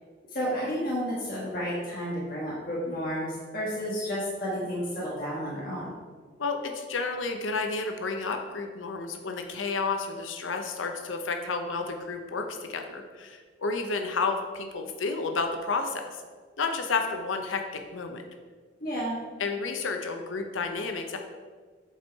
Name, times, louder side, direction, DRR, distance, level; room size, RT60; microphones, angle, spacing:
voice 1, 0.3-5.9 18.8-19.2, equal, 50° left, -6 dB, 1.5 m, -31 dB
voice 2, 6.4-16.2 16.6-18.2 19.4-21.2, left 4 dB, 85° left, 5 dB, 0.7 m, -31 dB
8.0 x 4.5 x 4.6 m, 1.5 s
head